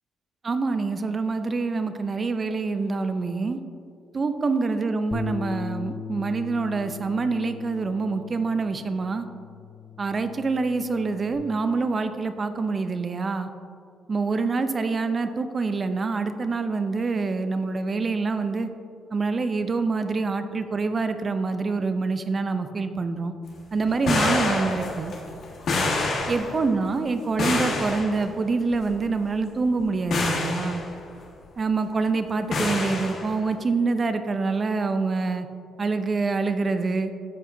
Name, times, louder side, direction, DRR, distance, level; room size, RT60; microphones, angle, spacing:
voice 1, 0.4-3.6 4.1-9.3 10.0-13.5 14.1-18.7 19.1-23.3 23.7-25.1 26.3-30.8 31.6-35.5 35.8-37.1, right 4 dB, 35° right, 9 dB, 0.6 m, -26 dB
Bass guitar, 5.1-11.4, left 5 dB, 25° left, 0.5 m, -37 dB
sound 1, 23.8-26.8 27.4-28.2 28.7-28.9 29.6-29.8 30.1-30.9 32.5-33.3, left 2 dB, 60° left, 1.5 m, -27 dB
13.5 x 4.8 x 2.7 m, 2.3 s
cardioid pair, 90°, 0 cm